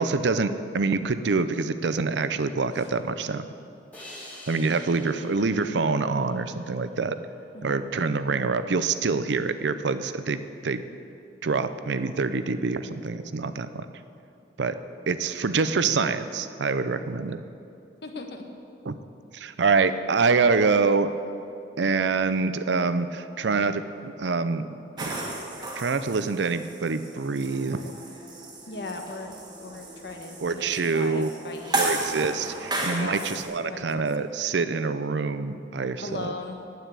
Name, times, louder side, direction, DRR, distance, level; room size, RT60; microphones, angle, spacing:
voice 1, 0.0-3.5 4.5-7.2 7.6-10.8 11.4-13.9 14.6-14.8 15.1-17.4 18.8-19.0 19.3-21.1 21.8-25.3 25.8-28.0 30.4-31.3 31.8-36.3, right 4 dB, 75° right, 12 dB, 0.6 m, -26 dB
sound 1, 3.9-7.2, left 1 dB, 10° left, 2.0 m, -47 dB
voice 2, 7.5-7.9 18.0-18.4 28.7-29.3 29.6-32.0 32.9-33.3 33.7-34.3 36.0-36.6, left 3 dB, 65° left, 3 dB, 1.3 m, -38 dB
sound 2, 25.0-33.4, right 2 dB, 25° right, 1.6 m, -34 dB
9.3 x 9.2 x 8.3 m, 2.6 s
head